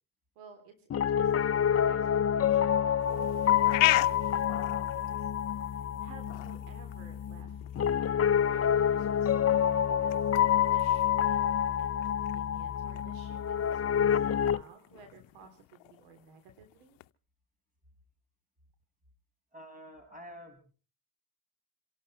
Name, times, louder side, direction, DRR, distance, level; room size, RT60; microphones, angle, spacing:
voice 1, 0.3-2.1 2.3-8.2 8.5-17.0, right 5 dB, 85° right, 7 dB, 3.3 m, -55 dB
Piano, 0.9-14.6, left 9 dB, 35° left, 0.8 m, -27 dB
sound 1, 3.0-17.1, left 22 dB, 75° left, 0.8 m, -38 dB
voice 2, 19.5-20.6, equal, 20° right, 5 dB, 6.8 m, -48 dB
27.5 x 12.0 x 4.2 m, 0.37 s
supercardioid pair, 80°, 44 cm